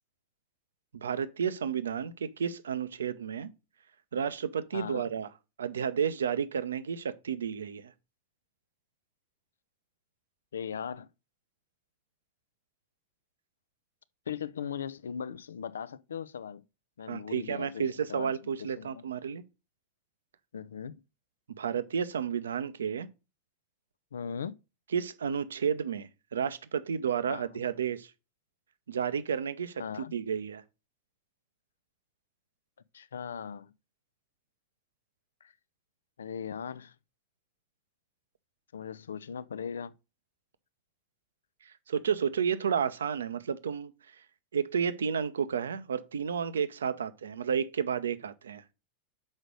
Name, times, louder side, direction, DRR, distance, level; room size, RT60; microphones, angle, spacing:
voice 1, 0.9-3.5 4.1-5.3 5.6-7.9 17.1-19.4 21.6-23.1 24.9-28.1 28.9-29.8 30.1-30.6 41.9-43.9 44.5-48.6, right 7 dB, 65° right, 0.7 m, -31 dB
voice 2, 4.7-5.1 10.5-11.1 14.3-16.6 17.0-19.0 20.5-21.0 24.1-24.5 27.3-27.6 29.8-30.1 32.9-33.7 35.4-35.5 36.2-36.9 38.7-39.9, left 7 dB, 65° left, 0.4 m, -39 dB
6.3 x 4.9 x 6.3 m
figure-of-eight pair, 90°, 0 cm